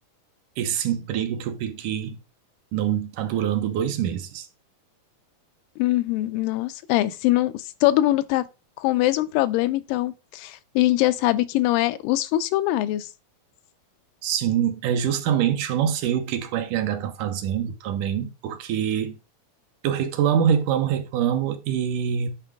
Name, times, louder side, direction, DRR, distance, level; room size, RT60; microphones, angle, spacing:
voice 1, 0.6-2.2 2.7-4.5 14.2-19.2 19.8-22.4, right 9 dB, 75° right, 2.1 m, -25 dB
voice 2, 5.8-8.5 8.8-13.1, left 16 dB, 85° left, 2.2 m, -22 dB
10.0 x 4.4 x 3.5 m
omnidirectional pair, 3.9 m